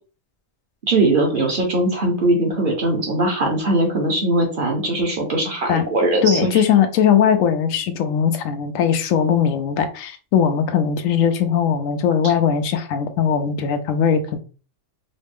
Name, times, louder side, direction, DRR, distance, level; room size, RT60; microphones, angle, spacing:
voice 1, 0.8-6.6, right 2 dB, 45° right, 1 dB, 1.0 m, -20 dB
voice 2, 6.2-14.4, left 7 dB, 85° left, 8 dB, 1.0 m, -19 dB
4.0 x 2.0 x 3.5 m, 0.36 s
omnidirectional pair, 1.3 m